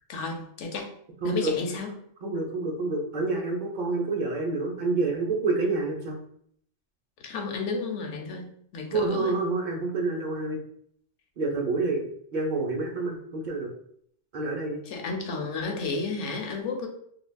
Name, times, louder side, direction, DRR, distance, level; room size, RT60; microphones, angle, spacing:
voice 1, 0.1-0.9 1.2-1.9 7.2-8.5 8.7-9.4 14.9-16.9, left 4 dB, 80° left, 2 dB, 0.9 m, -32 dB
voice 2, 1.2-1.5 2.2-6.2 8.9-10.6 11.4-13.7 14.3-14.8, right 3 dB, 50° right, -1 dB, 0.6 m, -28 dB
3.3 x 2.3 x 2.2 m, 0.67 s
omnidirectional pair, 1.2 m